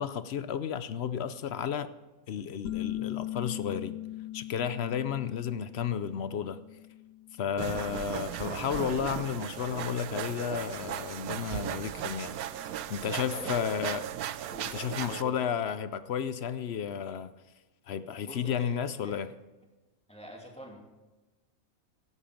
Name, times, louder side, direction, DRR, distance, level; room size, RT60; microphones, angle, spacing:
voice 1, 0.0-1.9 2.3-4.0 4.3-6.6 7.4-14.0 14.7-17.3 17.9-19.3, left 8 dB, 60° left, 13 dB, 0.8 m, -32 dB
sound 1, 2.6-8.0, left 14 dB, 80° left, 1.2 m, -40 dB
sound 2, 7.6-15.2, right 11 dB, 80° right, 1.1 m, -37 dB
voice 2, 13.3-13.7 14.5-14.7 15.1-15.5 18.2-18.8 19.0-19.2 20.1-20.8, equal, 5° left, 0 dB, 2.6 m, -45 dB
17.5 x 11.0 x 5.2 m, 1.1 s
omnidirectional pair, 1.5 m